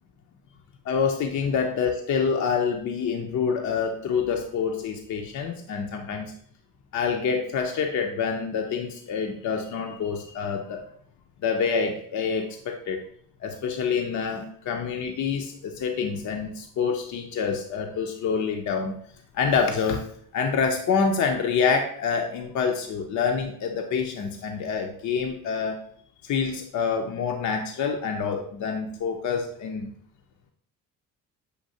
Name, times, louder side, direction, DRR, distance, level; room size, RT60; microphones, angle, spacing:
voice 1, 0.9-6.3 6.9-10.8 11.4-13.0 13.4-18.9 19.3-20.1 20.3-25.8 26.2-29.9, left 6 dB, 55° left, 3 dB, 0.7 m, -27 dB
6.5 x 2.7 x 2.7 m, 0.62 s
supercardioid pair, 70°, 35 cm